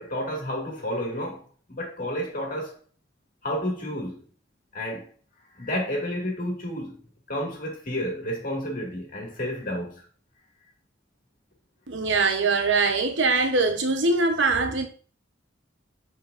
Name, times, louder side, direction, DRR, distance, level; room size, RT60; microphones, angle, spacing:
voice 1, 0.0-1.4 1.7-2.7 3.4-4.2 4.7-5.0 5.6-7.0 7.3-9.9, equal, 50° left, 2.1 m, -30 dB
voice 2, 11.9-14.9, right 3 dB, 80° right, 1.0 m, -22 dB
7.9 x 4.8 x 2.6 m
head